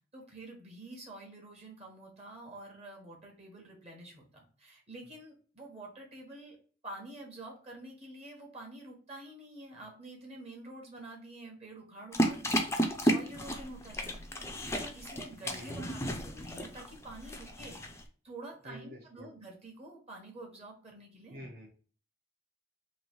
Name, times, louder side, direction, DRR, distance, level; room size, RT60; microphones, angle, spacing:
voice 1, 0.1-6.6 6.8-14.3 14.6-17.9 18.2-21.5, right 2 dB, 35° right, 0 dB, 1.1 m, -48 dB
sound 1, 12.1-18.0, equal, 15° left, 0.4 m, -33 dB
voice 2, 15.4-16.1 18.6-19.3 21.3-21.7, equal, 55° right, -2 dB, 0.8 m, -48 dB
3.1 x 2.6 x 4.4 m, 0.41 s
head